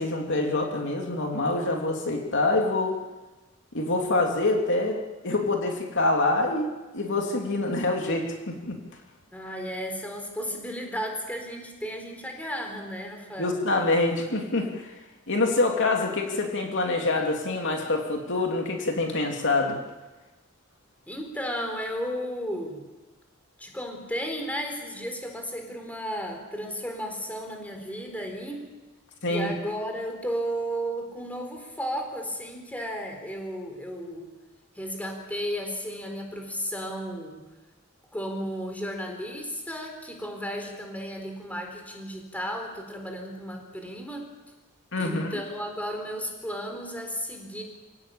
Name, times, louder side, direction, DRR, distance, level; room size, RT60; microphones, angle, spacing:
voice 1, 0.0-3.0 3.7-8.8 13.4-14.9 15.3-19.8 29.2-29.5 44.9-45.3, left 2 dB, 60° left, 2 dB, 3.0 m, -26 dB
voice 2, 9.3-13.6 21.1-22.9 23.6-28.7 29.3-34.3 34.7-37.5 38.1-44.3 45.0-47.6, equal, 5° left, 3 dB, 4.2 m, -34 dB
27.0 x 17.5 x 8.7 m, 1.2 s
head